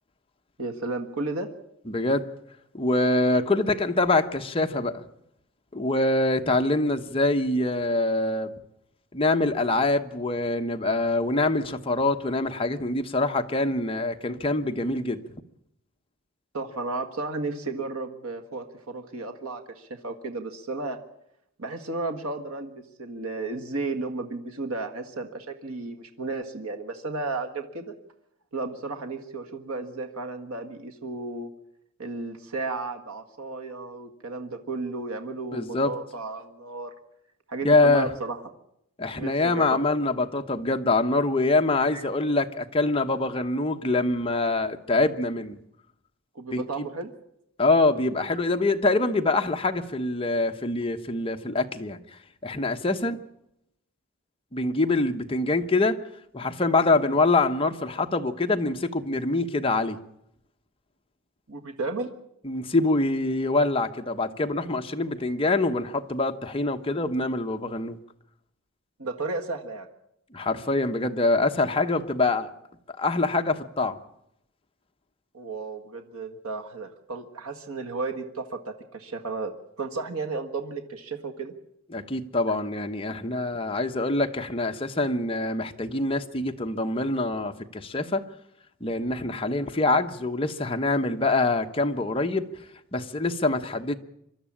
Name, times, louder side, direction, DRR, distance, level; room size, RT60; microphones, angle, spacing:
voice 1, 0.6-1.5 16.5-21.0 21.6-27.9 28.5-31.5 32.0-36.9 37.5-38.4 39.2-39.8 41.9-42.0 46.4-47.1 61.5-62.1 69.0-69.9 75.3-79.5 79.8-81.5, right 3 dB, 85° right, 1.8 m, -33 dB
voice 2, 1.9-2.3 2.7-5.0 5.7-8.5 9.1-15.2 35.5-35.9 37.6-38.1 39.0-45.6 46.5-46.9 47.6-52.0 52.4-53.2 54.5-56.0 56.3-60.0 62.4-68.0 70.3-72.5 72.9-73.9 81.9-88.2 88.8-92.4 92.9-94.0, left 2 dB, 25° left, 1.0 m, -25 dB
24.5 x 12.5 x 8.8 m
head